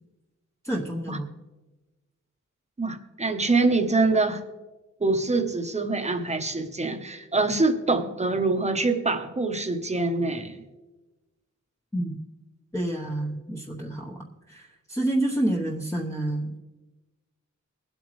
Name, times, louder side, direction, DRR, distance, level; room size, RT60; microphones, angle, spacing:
voice 1, 0.6-1.3 11.9-12.2 12.7-16.5, right 1 dB, 10° left, -3 dB, 1.0 m, -29 dB
voice 2, 2.8-4.4 5.0-10.6, right 3 dB, 20° right, 6 dB, 1.0 m, -25 dB
22.5 x 8.1 x 3.2 m, 1.1 s
wide cardioid pair, 130°, 31 cm